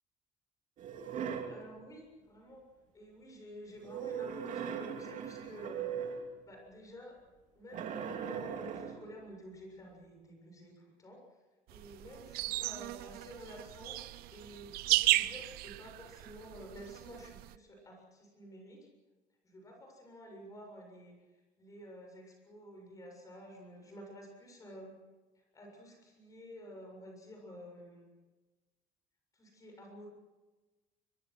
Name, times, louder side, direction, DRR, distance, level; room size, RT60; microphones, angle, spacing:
sound 1, 0.8-1.6 3.8-6.3 7.7-9.1, right 7 dB, 50° right, 2.8 m, -39 dB
voice 1, 1.0-2.6 2.9-6.2 6.4-7.2 7.5-11.4 11.7-18.9 19.4-25.0 25.4-28.0 29.3-30.1, equal, 20° left, 1 dB, 7.1 m, -51 dB
sound 2, 11.7-17.6, right 18 dB, 75° right, 0.7 m, -35 dB
23.5 x 22.5 x 6.2 m, 1.2 s
cardioid pair, 170°, 16 cm